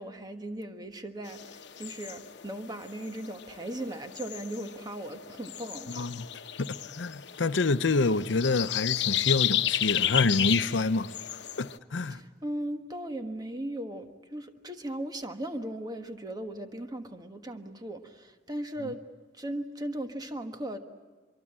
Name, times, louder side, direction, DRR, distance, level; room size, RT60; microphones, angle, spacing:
voice 1, 0.0-6.0 12.0-19.0 19.3-20.8, right 1 dB, 20° right, 1.4 m, -37 dB
sound 1, 1.3-11.8, left 11 dB, 70° left, 1.0 m, -33 dB
voice 2, 6.0-6.3 6.6-11.1 11.6-12.2, left 3 dB, 90° left, 0.7 m, -27 dB
25.0 x 23.5 x 8.8 m
head